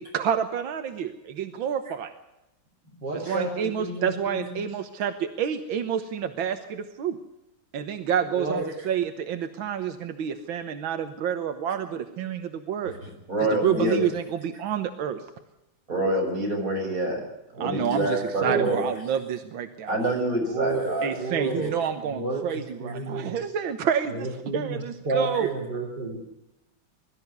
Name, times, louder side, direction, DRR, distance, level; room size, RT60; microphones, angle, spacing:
voice 1, 0.0-2.1 3.1-7.2 7.7-12.9 13.5-15.2 17.6-20.0 21.0-25.5, right 8 dB, 90° right, 8 dB, 1.9 m, -29 dB
voice 2, 2.9-4.7 8.4-8.7 18.4-18.8 20.5-21.7 22.0-23.4 24.1-26.2, right 3 dB, 60° right, -1 dB, 3.8 m, -31 dB
voice 3, 13.0-14.0 15.9-17.2 17.5-18.8 19.9-21.1, right 1 dB, 45° right, 1 dB, 6.6 m, -26 dB
22.5 x 13.0 x 9.5 m, 0.93 s
omnidirectional pair, 2.1 m